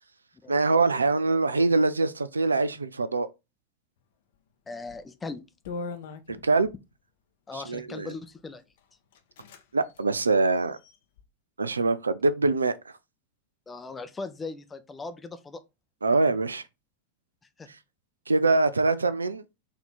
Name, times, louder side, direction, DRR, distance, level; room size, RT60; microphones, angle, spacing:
voice 1, 0.5-3.3 6.3-6.7 7.7-8.1 9.7-10.8 11.6-12.7 16.0-16.6 18.3-19.4, right 3 dB, 75° right, 0.4 m, -24 dB
voice 2, 4.7-5.4 7.5-8.6 13.7-15.6 17.6-17.7, left 3 dB, 15° left, 0.5 m, -38 dB
sound 1, 4.8-5.1 5.7-6.8 7.8-8.2 8.8-8.9 9.1-9.6 9.9-10.0 10.5-11.2, left 4 dB, 55° left, 0.7 m, -41 dB
4.2 x 2.8 x 3.9 m
figure-of-eight pair, 90°, 0 cm